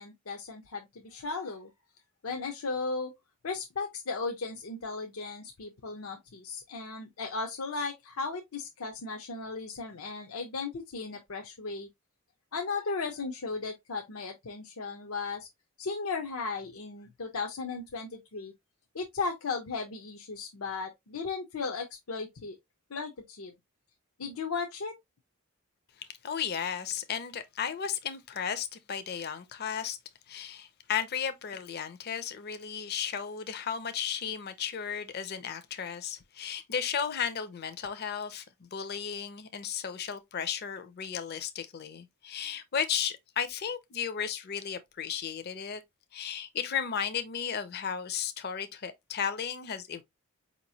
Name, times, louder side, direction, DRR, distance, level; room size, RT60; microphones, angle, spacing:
voice 1, 0.0-1.7 2.2-3.1 3.4-11.9 12.5-15.5 15.8-18.5 18.9-22.6 22.9-23.5 24.2-24.9, left 4 dB, 85° left, 0.7 m, -36 dB
voice 2, 26.2-30.0 30.3-45.8 46.1-50.0, left 7 dB, 50° left, 0.5 m, -34 dB
4.8 x 2.9 x 2.7 m
head